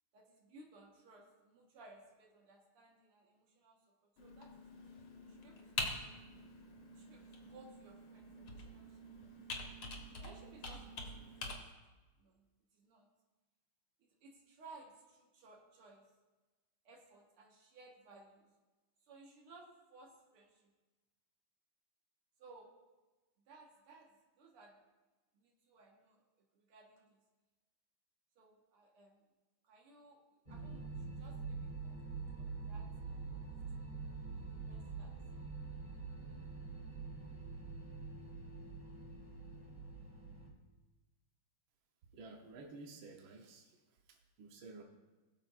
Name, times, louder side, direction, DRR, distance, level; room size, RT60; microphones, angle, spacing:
voice 1, 0.1-4.8 5.3-5.9 6.9-9.3 10.2-11.7 12.2-12.4 12.7-13.1 14.0-16.0 16.9-18.5 19.0-20.7 22.4-22.7 23.5-24.1 24.4-24.8 25.3-26.2 26.5-27.2 28.4-29.2 29.6-33.8 34.4-35.1 35.9-36.1, right 3 dB, 90° right, 0 dB, 2.4 m, -60 dB
Computer keyboard, 4.2-11.5, left 2 dB, 75° left, 2.2 m, -46 dB
sound 1, 30.4-40.5, right 4 dB, 20° right, 2.7 m, -45 dB
voice 2, 42.1-43.8 44.1-44.8, right 3 dB, 70° right, 2 dB, 1.7 m, -53 dB
21.0 x 7.4 x 2.5 m, 1.2 s
omnidirectional pair, 2.4 m